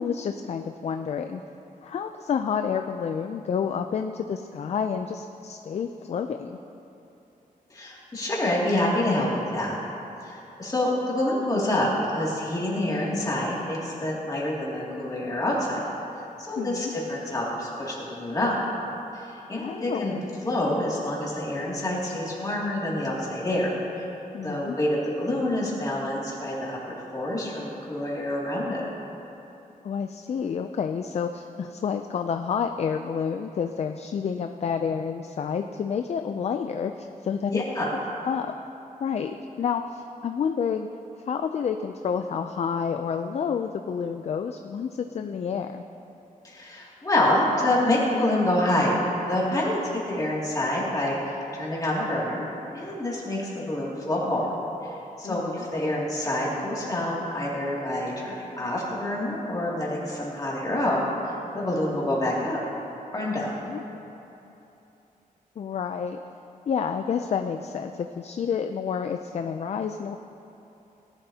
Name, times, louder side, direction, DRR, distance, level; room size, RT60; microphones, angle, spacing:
voice 1, 0.0-1.4 1.8-6.6 16.6-16.9 19.6-20.2 24.3-24.8 29.8-37.6 38.2-38.5 39.0-40.9 41.3-45.8 55.2-55.7 63.7-64.0 65.6-66.2 66.7-70.2, left 6 dB, 45° left, 7 dB, 0.4 m, -29 dB
voice 2, 7.7-9.7 10.2-15.8 16.4-18.6 19.1-20.2 20.4-24.1 24.4-26.8 27.1-28.8 37.5-37.9 46.4-52.4 52.7-54.4 54.8-62.6 63.1-63.5, left 1 dB, 25° left, -5 dB, 2.4 m, -27 dB
17.5 x 11.5 x 2.8 m, 3.0 s
wide cardioid pair, 175°, 15 cm